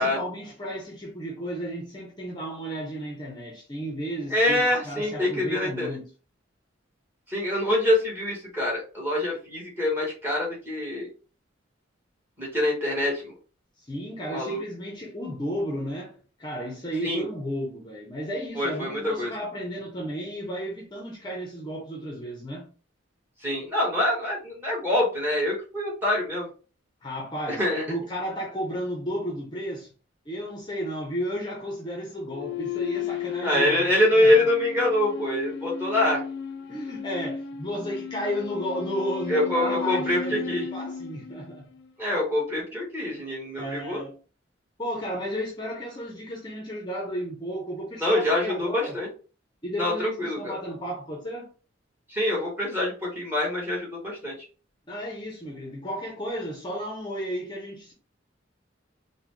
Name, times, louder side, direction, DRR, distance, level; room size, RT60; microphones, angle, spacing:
voice 1, 0.0-6.1 13.8-22.7 27.0-27.6 27.9-29.9 30.3-34.4 36.7-41.7 43.6-44.1 44.8-49.0 49.6-51.5 54.9-57.9, equal, 25° left, 0.7 m, -33 dB
voice 2, 4.3-6.0 7.3-11.1 12.4-13.3 14.3-14.6 17.0-17.2 18.5-19.3 23.4-26.5 27.5-27.8 33.4-36.2 39.3-40.6 42.0-44.0 48.0-49.1 49.8-50.6 52.1-54.3, left 1 dB, 10° right, 1.5 m, -25 dB
sound 1, 32.3-41.9, left 6 dB, 60° left, 0.3 m, -35 dB
3.9 x 2.2 x 3.2 m
head